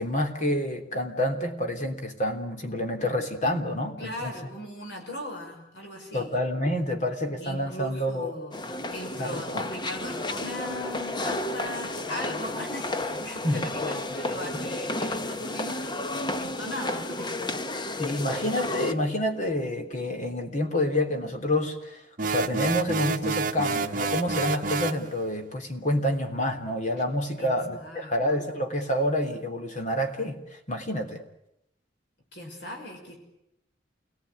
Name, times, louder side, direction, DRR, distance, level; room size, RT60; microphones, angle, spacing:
voice 1, 0.0-4.3 6.1-8.3 9.1-9.6 13.4-13.6 14.5-14.6 18.0-30.4 30.7-31.2, left 1 dB, 45° left, 5 dB, 3.2 m, -28 dB
voice 2, 4.0-6.4 7.4-17.3 27.4-28.2 32.3-33.2, left 1 dB, 70° left, 2 dB, 6.1 m, -39 dB
sound 1, 8.5-18.9, left 2 dB, 25° left, 1.0 m, -32 dB
sound 2, 22.2-25.0, right 4 dB, 50° right, 1.1 m, -28 dB
28.5 x 19.5 x 9.5 m, 0.84 s
head